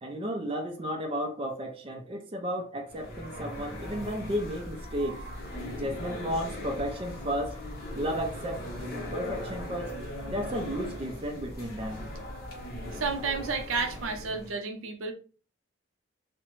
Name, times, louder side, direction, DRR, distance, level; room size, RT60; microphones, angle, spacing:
voice 1, 0.0-5.2 5.8-7.6 7.9-10.0 10.3-12.1, equal, 25° right, 0.4 m, -33 dB
sound 1, 2.9-14.5, left 1 dB, 50° left, 0.9 m, -39 dB
voice 2, 12.9-15.1, right 4 dB, 85° right, 0.5 m, -31 dB
2.4 x 2.1 x 3.0 m
head